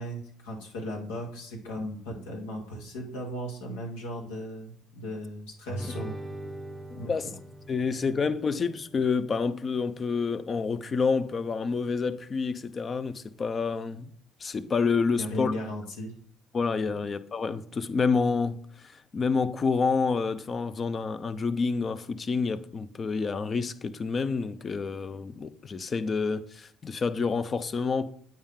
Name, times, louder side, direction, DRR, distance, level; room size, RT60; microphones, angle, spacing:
voice 1, 0.0-6.1 7.0-7.1 15.1-16.1 16.8-17.0, equal, 90° left, 1.4 m, -36 dB
Guitar, 5.7-10.7, equal, ahead, 0.7 m, -43 dB
voice 2, 6.9-7.3 7.7-14.1 14.4-15.5 16.5-28.1, left 5 dB, 40° left, 0.5 m, -28 dB
8.8 x 4.5 x 3.7 m
supercardioid pair, 70°, 0 cm